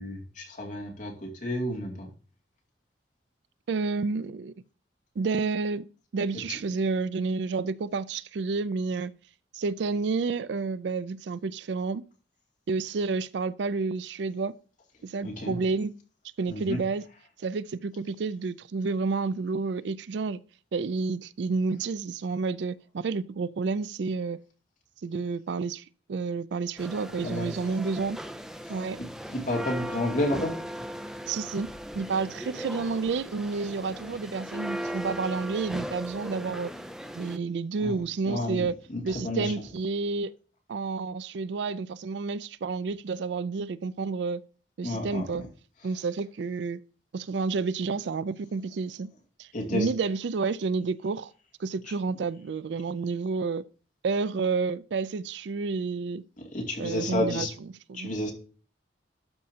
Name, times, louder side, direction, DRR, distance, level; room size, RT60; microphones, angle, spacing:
voice 1, 0.0-2.1 6.5-6.6 15.2-15.6 16.5-16.8 27.2-27.5 28.6-30.5 37.8-39.6 44.8-45.5 45.8-46.0 49.5-49.9 51.8-51.9 56.4-57.5 57.9-58.3, left 1 dB, 45° left, 2.5 m, -31 dB
voice 2, 3.7-4.5 5.2-5.9 6.1-9.1 9.5-12.0 12.7-14.5 15.0-15.9 16.4-17.0 17.4-20.4 20.7-24.4 25.0-28.2 28.7-29.0 31.3-31.7 31.9-36.7 37.1-38.7 39.0-40.3 40.7-44.4 44.8-45.4 45.8-46.8 47.1-49.1 49.4-51.3 51.6-53.6 54.0-56.2 56.8-57.5 57.9-58.1, right 4 dB, 70° right, 0.4 m, -30 dB
sound 1, 26.8-37.4, equal, 5° right, 0.4 m, -38 dB
12.5 x 5.4 x 2.8 m
head